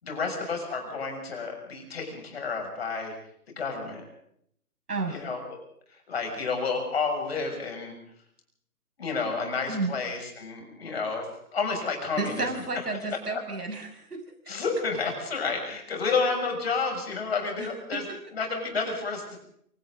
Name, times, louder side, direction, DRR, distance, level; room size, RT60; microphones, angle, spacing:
voice 1, 0.0-3.1 3.5-4.0 5.1-5.4 6.1-7.9 9.0-11.3 11.5-12.4 13.3-13.4 14.5-18.0 18.3-19.4, left 4 dB, 40° left, 3 dB, 6.8 m, -30 dB
voice 2, 4.9-5.2 9.7-9.9 12.2-14.6 17.6-18.2, right 3 dB, 90° right, 4 dB, 6.5 m, -32 dB
28.5 x 26.0 x 3.9 m, 0.70 s
hypercardioid pair, 170°, 45 cm